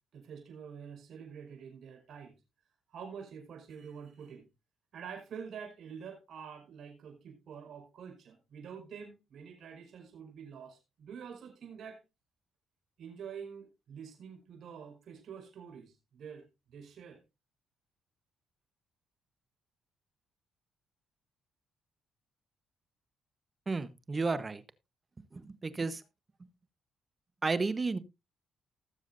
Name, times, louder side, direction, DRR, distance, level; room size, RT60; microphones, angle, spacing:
voice 1, 0.1-2.4 2.9-4.5 4.9-12.0 13.0-16.4 16.7-17.2, right 7 dB, 65° right, 3 dB, 5.1 m, -47 dB
voice 2, 23.7-24.6 25.3-26.0 26.4-26.5 27.4-28.0, right 3 dB, 30° right, 14 dB, 1.1 m, -32 dB
19.5 x 7.2 x 2.6 m, 0.25 s
cardioid pair, 90°, 0 cm